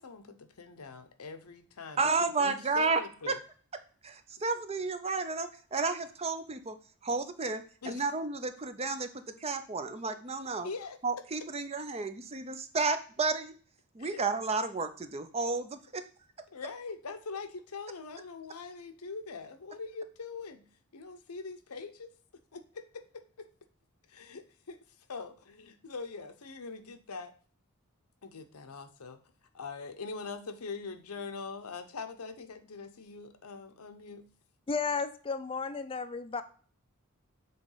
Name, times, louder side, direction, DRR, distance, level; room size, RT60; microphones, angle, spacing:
voice 1, 0.0-3.4 7.8-8.0 10.6-11.0 14.0-14.2 16.5-20.6 20.9-22.1 22.5-23.0 23.4-23.5 24.1-24.8 25.1-27.3 28.2-29.2 29.5-34.2, left 4 dB, 90° left, 8 dB, 0.8 m, -42 dB
voice 2, 2.0-3.0 3.3-3.4 4.0-6.8 7.0-10.7 11.0-13.5 13.9-16.0, right 4 dB, 30° right, 10 dB, 0.6 m, -32 dB
voice 3, 34.7-36.4, left 5 dB, 25° left, 10 dB, 0.5 m, -33 dB
7.6 x 3.2 x 5.5 m, 0.43 s
head